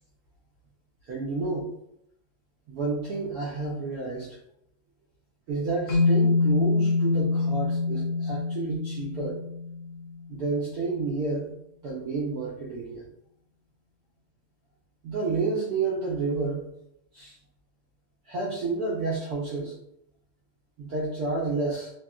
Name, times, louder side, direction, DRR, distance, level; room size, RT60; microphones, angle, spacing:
voice 1, 1.1-1.7 2.7-4.4 5.5-9.4 10.3-11.5 11.8-13.0 15.0-16.7 17.1-17.4 18.3-19.7 20.8-21.9, right 3 dB, 85° right, -4 dB, 0.8 m, -30 dB
sound 1, 5.9-10.2, left 3 dB, 65° left, 1.1 m, -25 dB
3.0 x 2.9 x 2.3 m, 0.77 s
omnidirectional pair, 2.2 m